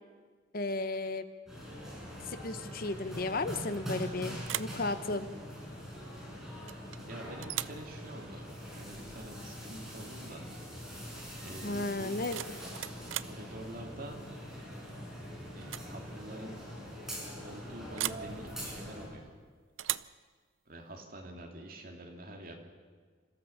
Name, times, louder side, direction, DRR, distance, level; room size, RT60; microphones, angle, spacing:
voice 1, 0.5-1.3 2.3-5.3 11.6-12.4, left 2 dB, 50° left, 11 dB, 0.9 m, -34 dB
sound 1, 1.5-19.1, equal, ahead, 6.0 m, -43 dB
sound 2, 3.7-4.1 4.4-4.8 6.7-7.0 7.4-7.8 9.7-9.9 10.2-10.6 12.0-13.4 14.9-15.2 15.6-15.9 16.2-16.3 18.0-18.3 19.8-20.2, right 14 dB, 85° right, 0.5 m, -38 dB
voice 2, 7.1-10.5 11.4-12.2 13.1-14.2 15.5-16.5 17.4-19.3 20.7-22.5, right 1 dB, 45° right, 1 dB, 3.0 m, -46 dB
27.0 x 14.0 x 7.3 m, 1.6 s
head